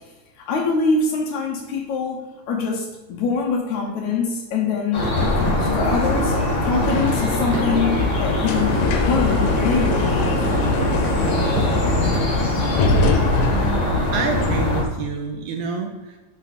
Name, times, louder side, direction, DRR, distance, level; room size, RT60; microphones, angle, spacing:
voice 1, 0.4-5.1 5.4-6.4 6.6-10.4, left 4 dB, 70° left, 1 dB, 2.1 m, -24 dB
sound 1, 4.9-14.8, left 2 dB, 40° left, 2.1 m, -23 dB
sound 2, 5.0-12.6, right 5 dB, 50° right, 3.7 m, -30 dB
sound 3, 5.1-14.8, left 3 dB, 90° left, 2.6 m, -24 dB
voice 2, 13.5-16.2, right 5 dB, 75° right, 2 dB, 1.9 m, -28 dB
7.4 x 6.0 x 4.2 m, 1.2 s
omnidirectional pair, 4.0 m